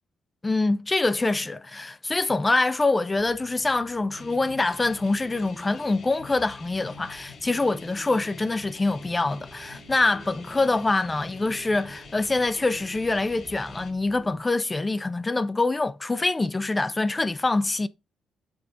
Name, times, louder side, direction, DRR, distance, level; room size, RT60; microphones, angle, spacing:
voice 1, 0.4-17.9, left 2 dB, 20° left, 0.4 m, -25 dB
sound 1, 3.1-14.4, right 3 dB, 40° right, 1.3 m, -50 dB
sound 2, 4.1-13.9, left 5 dB, 55° left, 2.2 m, -47 dB
7.8 x 4.1 x 3.7 m
cardioid pair, 90°, 0 cm